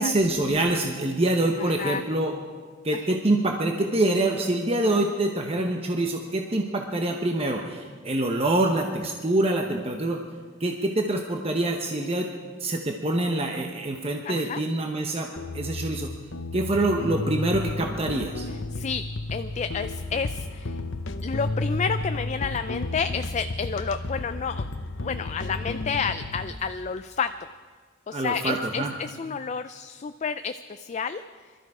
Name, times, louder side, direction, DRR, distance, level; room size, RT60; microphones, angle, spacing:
voice 1, 0.0-2.4 2.8-10.2 10.6-12.3 12.6-16.1 16.5-18.5 28.1-28.9, right 2 dB, 30° right, 2 dB, 1.0 m, -25 dB
voice 2, 1.6-2.0 2.9-3.1 14.3-14.6 18.7-19.0 19.3-20.8 21.2-24.7 25.0-27.3 28.1-31.2, left 6 dB, 35° left, 10 dB, 0.4 m, -30 dB
sound 1, 15.4-26.5, left 2 dB, 80° left, 0.8 m, -32 dB
22.0 x 13.0 x 4.9 m, 1.6 s
head